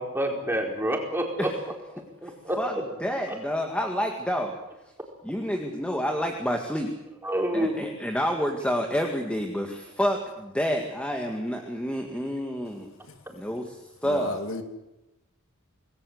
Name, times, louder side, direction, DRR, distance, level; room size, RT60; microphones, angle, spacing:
voice 1, 0.0-1.5 1.9-2.6 7.2-7.9, right 1 dB, 10° right, 1 dB, 4.6 m, -28 dB
voice 2, 2.2-4.6 5.2-6.9 7.5-12.9 13.3-14.3, equal, 5° left, 3 dB, 2.0 m, -29 dB
voice 3, 14.0-14.6, left 2 dB, 65° left, 7 dB, 2.4 m, -32 dB
27.0 x 20.0 x 8.1 m, 0.95 s
head